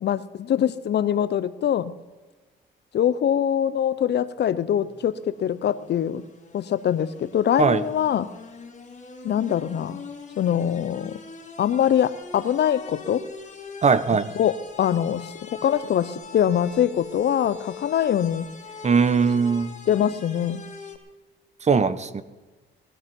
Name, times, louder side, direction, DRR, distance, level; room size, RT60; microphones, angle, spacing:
voice 1, 0.0-1.9 2.9-5.1 5.4-6.2 6.5-8.3 9.2-10.0 10.4-11.2 11.6-13.2 14.3-18.5 19.9-20.6, left 9 dB, 60° left, 15 dB, 0.8 m, -23 dB
sound 1, 4.2-21.0, left 5 dB, 35° left, 2.6 m, -43 dB
voice 2, 13.8-14.3 18.8-19.7 21.7-22.2, right 5 dB, 35° right, 14 dB, 1.0 m, -20 dB
19.0 x 12.0 x 5.4 m, 1.3 s
cardioid pair, 90°, 20 cm